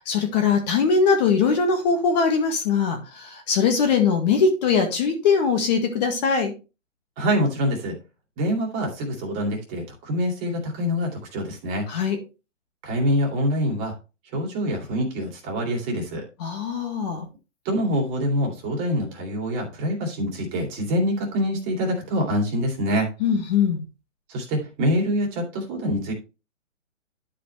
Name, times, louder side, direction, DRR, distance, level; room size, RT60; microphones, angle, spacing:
voice 1, 0.1-6.5 11.9-12.2 16.4-17.3 23.2-23.8, left 5 dB, 35° left, 5 dB, 1.8 m, -21 dB
voice 2, 7.2-8.0 8.4-11.9 12.8-13.9 14.3-16.2 17.6-23.1 24.3-26.1, equal, 20° right, 1 dB, 2.5 m, -25 dB
11.5 x 5.2 x 3.3 m, 0.30 s
hypercardioid pair, 150°, 39 cm